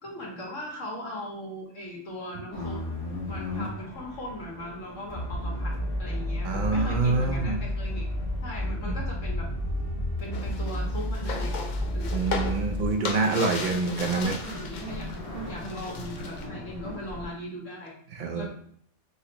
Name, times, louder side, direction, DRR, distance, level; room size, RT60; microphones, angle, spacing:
voice 1, 0.0-2.8 3.3-8.1 8.4-9.5 10.2-11.6 11.9-12.1 13.1-13.3 14.5-15.1 15.4-18.0 18.3-18.5, left 1 dB, 70° left, -3 dB, 1.6 m, -39 dB
sound 1, 2.5-17.3, left 1 dB, 25° left, 1.7 m, -32 dB
voice 2, 6.4-7.6 8.9-9.0 12.1-14.4 18.1-18.5, right 3 dB, 50° right, 3 dB, 0.7 m, -26 dB
sound 2, 10.3-15.2 15.4-16.5, left 4 dB, 55° left, 0.5 m, -37 dB
5.6 x 3.1 x 2.9 m, 0.63 s
omnidirectional pair, 1.3 m